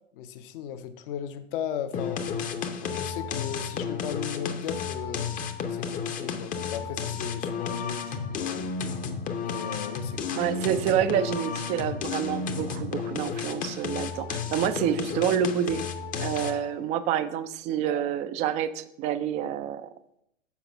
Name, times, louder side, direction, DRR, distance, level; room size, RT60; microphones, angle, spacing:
voice 1, 0.1-2.3 2.8-5.3 5.7-8.7 9.4-10.7, left 9 dB, 50° left, 10 dB, 0.8 m, -36 dB
sound 1, 1.9-16.7, left 6 dB, 20° left, 0.7 m, -32 dB
voice 2, 10.4-15.8 16.2-19.9, right 9 dB, 20° right, 12 dB, 0.4 m, -28 dB
7.1 x 5.0 x 5.8 m, 0.76 s
figure-of-eight pair, 100°, 36 cm